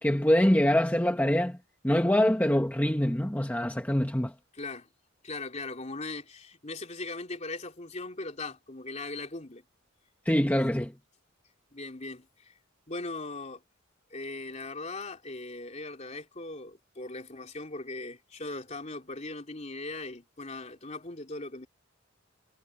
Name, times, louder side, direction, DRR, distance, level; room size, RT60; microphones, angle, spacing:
voice 1, 0.0-1.6 1.8-4.3 10.2-10.9, left 1 dB, 10° left, 1.2 m, -24 dB
voice 2, 4.5-4.9 5.2-9.6 11.7-12.5 12.9-13.6 14.1-21.7, left 2 dB, 35° left, 3.2 m, -39 dB
head